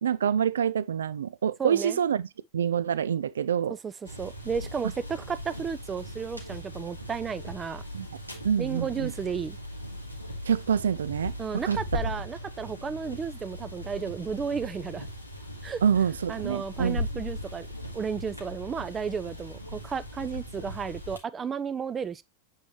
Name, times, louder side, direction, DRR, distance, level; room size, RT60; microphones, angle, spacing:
voice 1, 0.0-2.3 2.5-3.8 7.9-8.1 8.4-9.1 10.5-11.3 11.6-11.8 15.8-17.0, right 8 dB, 65° right, 0.4 m, -26 dB
voice 2, 1.6-2.0 3.7-3.9 4.2-7.8 8.6-9.6 11.4-15.1 15.6-15.8 16.3-17.7 17.9-22.2, right 6 dB, 20° right, 0.5 m, -33 dB
sound 1, 4.0-21.2, left 1 dB, 90° right, 2.2 m, -38 dB
8.4 x 4.7 x 3.0 m
figure-of-eight pair, 90°, 0 cm